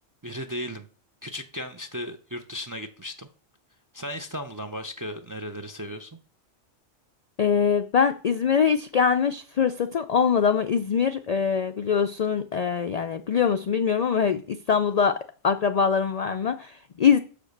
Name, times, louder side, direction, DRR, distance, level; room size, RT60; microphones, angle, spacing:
voice 1, 0.2-0.9 1.2-3.3 3.9-6.1, equal, 30° right, 0.4 m, -35 dB
voice 2, 7.4-15.2 15.4-17.2, left 6 dB, 60° left, 0.4 m, -23 dB
6.7 x 5.1 x 6.5 m
omnidirectional pair, 1.2 m